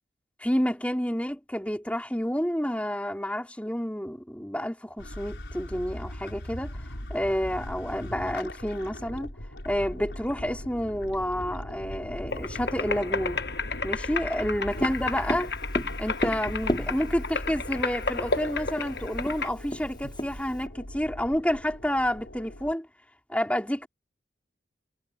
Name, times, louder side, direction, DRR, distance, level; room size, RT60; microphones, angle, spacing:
voice 1, 0.4-6.8 7.1-9.3 9.6-13.4 13.8-15.5 16.0-22.9 23.3-23.9, equal, 5° left, 4.5 m, -29 dB
sound 1, 5.0-22.7, left 1 dB, 90° left, 5.8 m, -39 dB
sound 2, 12.3-19.5, left 4 dB, 65° left, 1.2 m, -32 dB
Tap, 14.8-17.4 18.4-18.5 18.8-18.9 19.2-20.7, equal, 25° left, 5.4 m, -32 dB
head